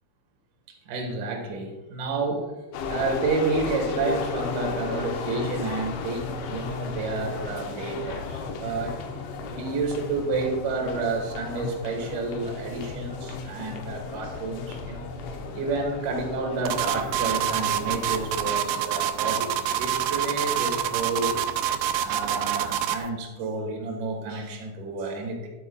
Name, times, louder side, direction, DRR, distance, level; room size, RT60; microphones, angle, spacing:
voice 1, 0.9-2.5 2.9-8.9 9.4-15.1 15.5-19.5 19.8-21.4 22.0-25.5, right 3 dB, 60° right, 1 dB, 2.4 m, -30 dB
sound 1, 2.7-18.5, left 4 dB, 85° left, 3.1 m, -35 dB
sound 2, 16.7-23.1, right 10 dB, 85° right, 2.4 m, -26 dB
12.0 x 8.2 x 2.3 m, 1.1 s
omnidirectional pair, 5.3 m